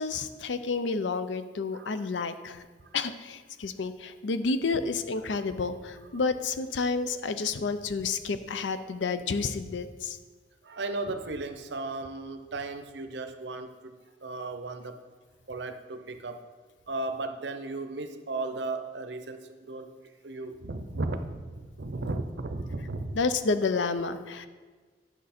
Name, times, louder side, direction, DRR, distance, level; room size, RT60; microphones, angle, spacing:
voice 1, 0.0-2.6 2.9-10.2 23.1-24.5, left 4 dB, 85° left, 11 dB, 0.6 m, -30 dB
voice 2, 10.6-13.9 14.2-15.1 15.5-16.4 16.9-19.9 20.2-23.2, right 2 dB, 70° right, 8 dB, 0.7 m, -35 dB
10.0 x 6.1 x 4.3 m, 1.4 s
head